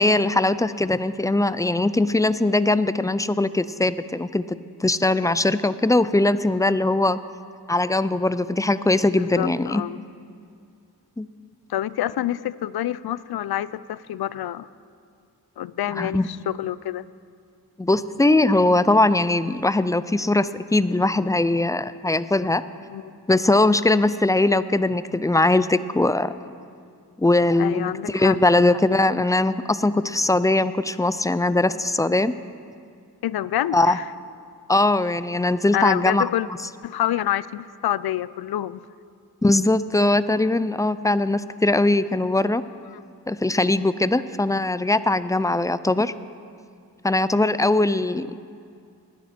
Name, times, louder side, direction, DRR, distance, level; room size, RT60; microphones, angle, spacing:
voice 1, 0.0-7.2 7.7-9.8 11.2-11.3 16.0-16.3 17.8-22.6 23.3-26.3 27.2-32.3 33.7-34.0 34.7-36.2 39.4-42.6 43.3-46.1 47.0-48.4, left 2 dB, 10° left, 15 dB, 0.4 m, -20 dB
voice 2, 9.2-10.0 11.7-14.7 15.6-17.1 22.9-23.2 27.6-28.4 33.2-34.1 35.7-36.5 36.8-38.8 42.9-43.0, left 12 dB, 70° left, 18 dB, 0.5 m, -27 dB
19.5 x 10.5 x 4.3 m, 2.4 s
cardioid pair, 50°, 39 cm